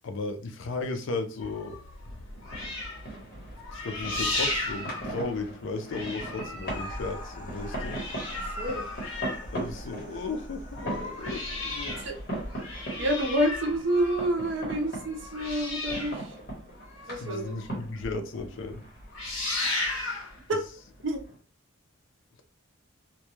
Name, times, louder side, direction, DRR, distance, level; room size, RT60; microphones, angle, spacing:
voice 1, 0.0-1.8 3.7-8.0 9.5-12.0 17.2-18.8, left 3 dB, 60° left, 0.4 m, -35 dB
sound 1, 1.4-5.6 5.9-10.1 10.6-17.7 18.0-18.1 18.5-18.7 19.0-20.4 21.2-21.3, left 2 dB, 80° left, 1.0 m, -35 dB
sound 2, 2.1-21.4, right 1 dB, 45° left, 1.0 m, -41 dB
sound 3, 6.6-15.6, equal, 10° right, 1.0 m, -45 dB
voice 2, 8.3-8.8 12.0-12.1 13.0-16.4 17.1-17.6 20.5-20.6 21.0-21.2, right 1 dB, 60° right, 0.6 m, -28 dB
2.2 x 2.1 x 2.9 m
head